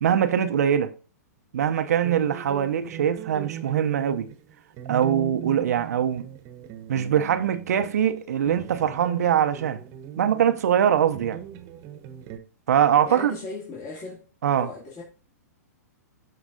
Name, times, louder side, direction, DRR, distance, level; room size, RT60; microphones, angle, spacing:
voice 1, 0.0-0.9 1.5-4.3 4.9-6.3 6.9-9.8 10.2-11.4 12.7-13.3 14.4-14.7, right 9 dB, 70° right, 0.6 m, -22 dB
sound 1, 2.0-12.4, right 10 dB, 35° right, 1.0 m, -39 dB
voice 2, 13.1-14.2 14.6-15.0, left 3 dB, 35° left, 2.4 m, -37 dB
13.0 x 4.6 x 2.6 m
hypercardioid pair, 120°, 9 cm